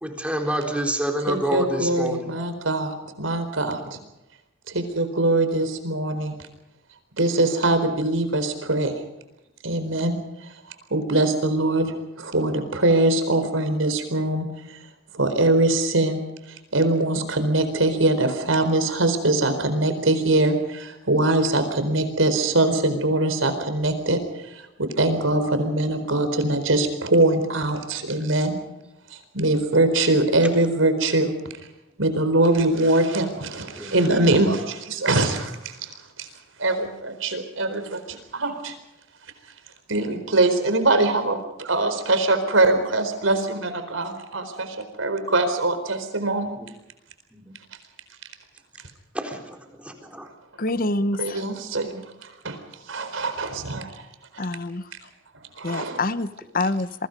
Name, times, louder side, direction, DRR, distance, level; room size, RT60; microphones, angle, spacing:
voice 1, 0.0-2.3 33.7-33.9 46.6-46.7 47.3-47.5 49.1-50.3, right 1 dB, 5° right, 3 dB, 4.1 m, -28 dB
voice 2, 1.3-4.0 4.7-6.3 7.2-8.9 9.6-10.2 10.9-14.5 15.1-16.2 16.7-24.2 24.5-28.5 29.1-31.3 32.0-35.9 36.2-36.3 36.6-38.7 39.9-46.6 51.2-52.6 52.9-53.9 55.6-56.0, right 2 dB, 90° right, 9 dB, 4.3 m, -22 dB
voice 3, 50.6-51.4 54.4-54.9 55.6-57.1, left 2 dB, 45° left, 13 dB, 1.1 m, -26 dB
28.0 x 23.5 x 5.3 m, 0.92 s
head